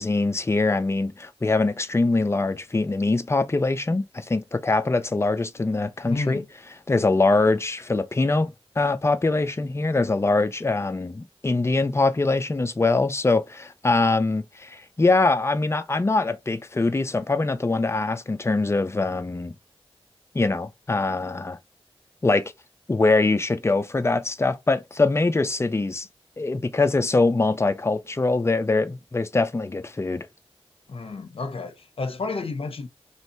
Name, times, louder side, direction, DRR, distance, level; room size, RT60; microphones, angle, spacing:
voice 1, 0.0-6.4 6.9-19.5 20.3-21.6 22.2-22.4 22.9-26.1 26.4-30.3, left 3 dB, 25° left, 0.5 m, -23 dB
voice 2, 6.1-6.5 30.9-32.9, left 3 dB, 65° left, 0.7 m, -31 dB
3.1 x 2.7 x 4.2 m
wide cardioid pair, 100°, 10 cm